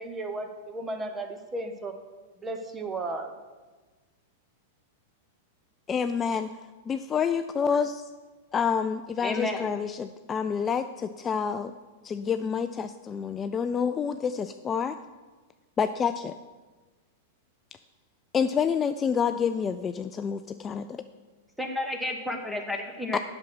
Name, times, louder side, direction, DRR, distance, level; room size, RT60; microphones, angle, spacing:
voice 1, 0.0-2.0 2.4-3.3, right 2 dB, 20° right, 6 dB, 1.0 m, -34 dB
voice 2, 5.9-6.5 6.9-8.0 8.5-11.7 12.0-15.0 15.8-16.3 18.3-21.0 23.1-23.2, left 6 dB, 25° left, 9 dB, 0.3 m, -28 dB
voice 3, 9.2-9.7 21.6-23.2, left 1 dB, ahead, 4 dB, 1.3 m, -31 dB
8.2 x 6.2 x 6.3 m, 1.3 s
hypercardioid pair, 105°, 0 cm